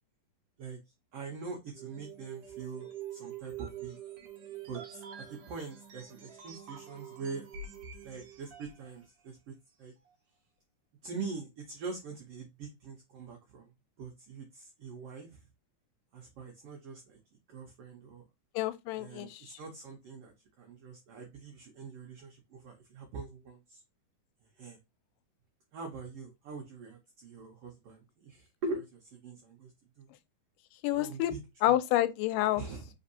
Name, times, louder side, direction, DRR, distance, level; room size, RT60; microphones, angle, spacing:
voice 1, 1.1-4.0 4.7-7.4 8.0-9.9 11.0-13.7 14.0-15.5 16.1-17.2 17.5-18.3 19.0-23.8 24.5-24.8 25.7-30.1 31.0-31.8 32.5-32.9, right 4 dB, 80° right, 1.3 m, -43 dB
sound 1, 1.7-8.9, right 8 dB, 65° right, 1.5 m, -46 dB
voice 2, 18.6-19.4 30.8-31.3 31.6-32.6, left 14 dB, 90° left, 2.2 m, -28 dB
4.5 x 3.4 x 2.7 m
omnidirectional pair, 3.7 m